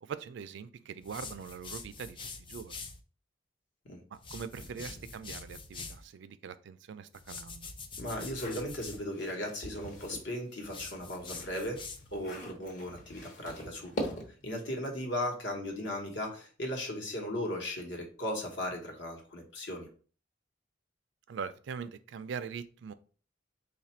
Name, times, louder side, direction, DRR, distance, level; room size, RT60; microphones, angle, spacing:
voice 1, 0.0-2.7 4.1-7.7 21.3-22.9, right 6 dB, 70° right, 0.3 m, -42 dB
sound 1, 1.0-3.0 4.1-6.0 7.1-9.0 10.6-12.2, left 4 dB, 25° left, 0.4 m, -45 dB
voice 2, 8.0-11.8 12.1-14.1 14.4-19.9, left 1 dB, 70° left, 1.1 m, -37 dB
sound 2, 8.0-10.3 10.7-14.5, equal, 45° left, 0.9 m, -42 dB
3.3 x 2.4 x 4.3 m
head